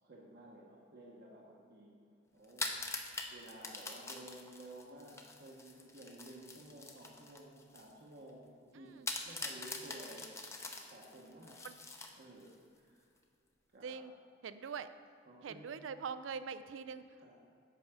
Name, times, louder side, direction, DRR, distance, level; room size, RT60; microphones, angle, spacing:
voice 1, 0.0-8.9 9.3-10.3 10.9-11.6 12.2-13.0 13.7-14.0 15.3-15.7 17.2-17.3, right 1 dB, 55° right, -3 dB, 1.0 m, -54 dB
sound 1, 2.4-7.9 8.3-8.4 9.1-12.5, left 3 dB, 15° left, 0.7 m, -44 dB
voice 2, 8.7-9.1 11.6-11.8 13.8-14.1 14.4-14.9 15.4-17.3, right 6 dB, 90° right, 12 dB, 0.4 m, -43 dB
8.2 x 5.4 x 6.1 m, 2.4 s
head